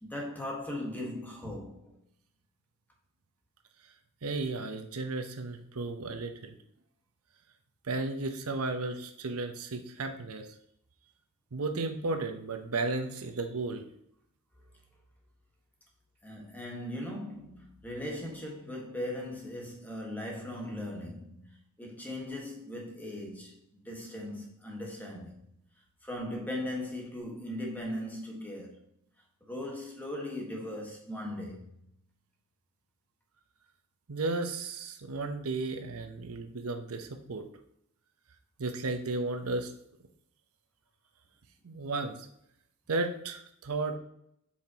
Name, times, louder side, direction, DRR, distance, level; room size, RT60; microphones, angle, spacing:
voice 1, 0.0-2.0 16.2-21.5 21.8-25.3 26.0-28.8 29.4-31.6, left 1 dB, 10° left, 1.4 m, -38 dB
voice 2, 4.2-6.5 7.8-10.5 11.5-13.8 34.1-37.4 38.6-39.7 41.6-42.3 42.9-44.0, right 3 dB, 85° right, 0.8 m, -34 dB
7.5 x 5.8 x 2.9 m
head